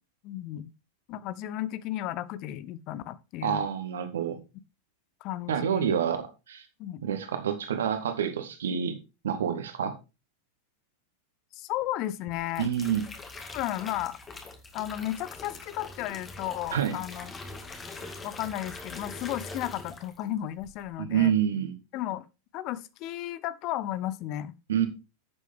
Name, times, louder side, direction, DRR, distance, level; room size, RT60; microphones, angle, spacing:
voice 1, 0.2-0.7 1.1-3.6 5.2-6.0 6.8-7.0 11.5-12.7 13.5-14.2 14.7-17.3 18.2-21.3 21.9-22.3 22.5-24.5, left 13 dB, 40° left, 0.8 m, -34 dB
voice 2, 3.4-4.4 5.5-6.6 7.0-9.0 9.2-10.0 12.6-13.0 16.7-17.0 21.0-21.7 24.7-24.9, right 8 dB, 65° right, 2.0 m, -28 dB
sound 1, 12.3-20.3 20.6-20.9, left 3 dB, 20° left, 2.1 m, -43 dB
11.0 x 7.5 x 3.6 m
figure-of-eight pair, 90°, 0 cm